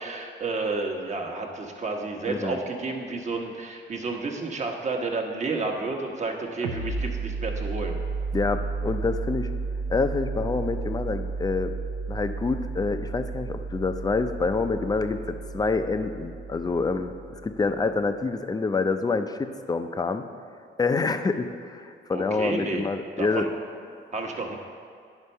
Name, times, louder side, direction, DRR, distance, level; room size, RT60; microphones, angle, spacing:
voice 1, 0.0-8.0 22.1-22.9 23.2-23.5 24.1-24.6, right 3 dB, 35° right, 2 dB, 1.1 m, -31 dB
voice 2, 2.3-2.6 8.3-9.5 9.9-11.7 12.1-20.3 20.8-23.5, left 4 dB, 20° left, 9 dB, 0.5 m, -27 dB
sound 1, 6.6-18.0, right 4 dB, 80° right, 0.6 m, -33 dB
9.9 x 4.3 x 5.5 m, 2.3 s
cardioid pair, 90°, 20 cm